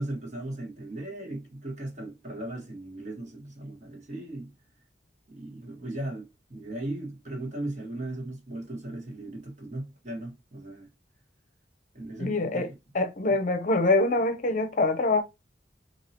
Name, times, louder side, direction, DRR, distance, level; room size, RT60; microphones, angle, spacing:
voice 1, 0.0-4.5 5.3-10.9 11.9-12.8 13.3-13.4, right 1 dB, 40° right, 1.5 m, -37 dB
voice 2, 12.2-12.7 12.9-15.2, left 2 dB, 45° left, 0.7 m, -24 dB
4.6 x 2.8 x 2.8 m
head